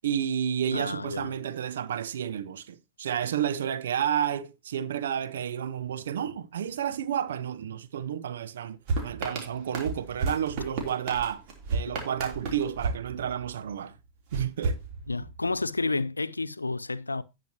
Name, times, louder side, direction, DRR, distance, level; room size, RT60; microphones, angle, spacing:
voice 1, 0.0-11.4 11.7-14.0 14.3-14.8, right 9 dB, 65° right, 0.7 m, -31 dB
voice 2, 0.7-1.3 11.9-12.0 15.1-17.2, left 3 dB, 80° left, 0.4 m, -30 dB
sound 1, 8.9-13.7 14.3-15.5, right 4 dB, 45° right, 3.2 m, -33 dB
17.5 x 5.9 x 2.9 m
figure-of-eight pair, 90°, 0 cm